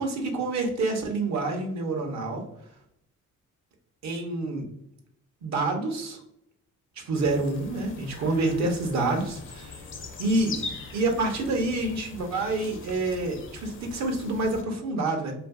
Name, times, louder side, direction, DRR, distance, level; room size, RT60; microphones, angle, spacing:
voice 1, 0.0-2.4 4.0-4.6 5.4-6.2 7.0-9.8 10.2-10.6 10.9-15.4, right 2 dB, 65° right, 3 dB, 0.8 m, -27 dB
sound 1, 7.1-14.6, left 4 dB, 45° left, 0.5 m, -41 dB
2.6 x 2.5 x 2.3 m, 0.76 s
cardioid pair, 90°, 30 cm